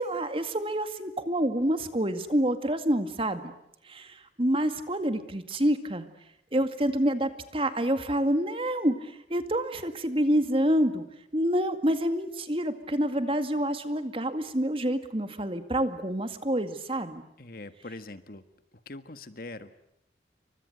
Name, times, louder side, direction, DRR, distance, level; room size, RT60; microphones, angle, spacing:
voice 1, 0.0-3.5 3.9-6.1 6.5-11.0 11.3-17.2, right 1 dB, 30° right, 8 dB, 2.1 m, -27 dB
voice 2, 17.4-18.4 18.8-19.7, left 2 dB, 55° left, 10 dB, 1.6 m, -42 dB
29.5 x 24.5 x 8.0 m, 0.78 s
head